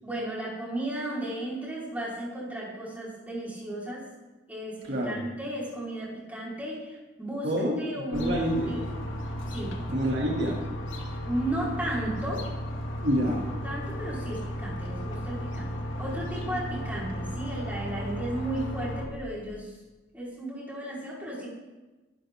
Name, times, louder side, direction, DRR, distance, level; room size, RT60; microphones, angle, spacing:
voice 1, 0.0-4.1 4.5-7.5 7.8-8.8 9.5-9.8 11.3-12.5 13.6-15.7 16.0-19.7 20.1-21.5, right 1 dB, 10° right, -6 dB, 4.7 m, -34 dB
voice 2, 4.9-5.2 7.4-9.0 9.9-10.6 13.0-13.4, equal, 65° right, -2 dB, 2.9 m, -28 dB
sound 1, 8.1-19.0, equal, 90° left, 2.4 m, -34 dB
23.0 x 11.5 x 3.8 m, 1.2 s
head